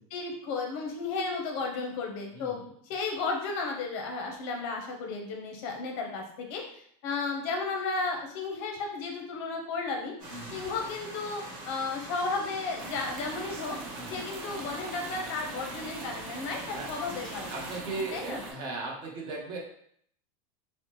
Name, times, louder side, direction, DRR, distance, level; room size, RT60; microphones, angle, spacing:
voice 1, 0.1-2.6 2.9-6.6 7.0-10.1 10.5-13.8 14.1-17.6 18.1-18.4, left 4 dB, 45° left, 2 dB, 0.6 m, -33 dB
voice 2, 2.3-2.7 10.3-10.6 14.0-14.2 16.7-16.9 17.5-19.6, right 3 dB, 25° right, -1 dB, 0.6 m, -37 dB
sound 1, 10.2-17.8, right 1 dB, 50° right, 1.2 m, -43 dB
sound 2, 12.8-18.5, right 3 dB, 80° right, 0.6 m, -42 dB
2.9 x 2.1 x 2.9 m, 0.65 s
supercardioid pair, 170°, 17 cm